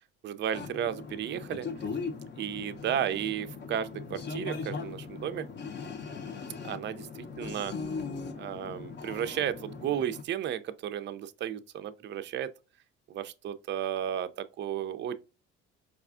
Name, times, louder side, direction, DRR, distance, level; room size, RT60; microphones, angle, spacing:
voice 1, 0.2-1.7 2.4-5.5 6.6-7.7 8.3-12.5 13.1-15.2, right 9 dB, 35° right, 0.4 m, -33 dB
sound 1, 0.5-10.2, left 5 dB, 35° left, 0.6 m, -39 dB
4.7 x 2.4 x 2.4 m
supercardioid pair, 70°, 32 cm